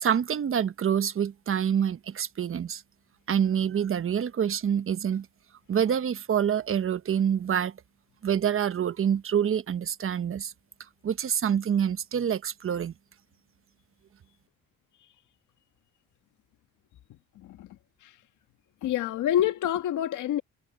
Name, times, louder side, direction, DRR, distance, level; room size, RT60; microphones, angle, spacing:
voice 1, 0.0-2.8 3.3-5.3 5.7-7.7 8.2-10.5 11.0-12.9, right 8 dB, 45° right, 1.1 m, -26 dB
voice 2, 17.4-17.8 18.0-18.1 18.8-20.4, left 11 dB, 80° left, 1.8 m, -27 dB
cardioid pair, 90°, 30 cm